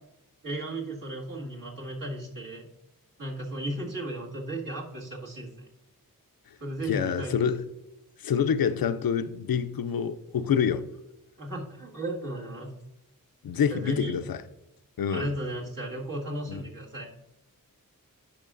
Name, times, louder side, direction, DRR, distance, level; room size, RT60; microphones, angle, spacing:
voice 1, 0.4-2.7 3.2-5.5 6.6-7.4 11.4-12.7 13.7-14.1 15.1-17.1, right 1 dB, 65° right, 1.9 m, -35 dB
voice 2, 6.9-7.7 8.2-10.9 13.4-14.4 15.0-15.3 16.5-16.6, left 7 dB, 90° left, 0.5 m, -27 dB
10.5 x 5.9 x 2.5 m
wide cardioid pair, 75°, 34 cm